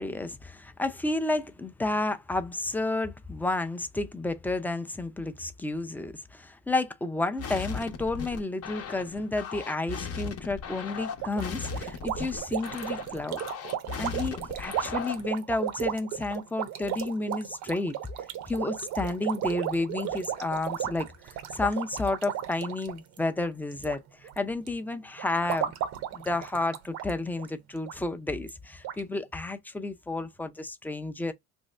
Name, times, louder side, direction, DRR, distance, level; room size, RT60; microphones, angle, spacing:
voice 1, 0.0-13.4 14.0-17.9 18.5-25.7 26.1-31.3, left 2 dB, 5° left, 0.4 m, -31 dB
sound 1, 7.4-15.3, left 6 dB, 55° left, 0.8 m, -37 dB
sound 2, 11.2-24.0 24.2-24.7 25.2-27.1 27.4-27.5 27.9-28.0 28.5-28.6 28.8-29.0, right 10 dB, 75° right, 0.7 m, -34 dB
3.1 x 2.7 x 3.1 m
cardioid pair, 115°, 29 cm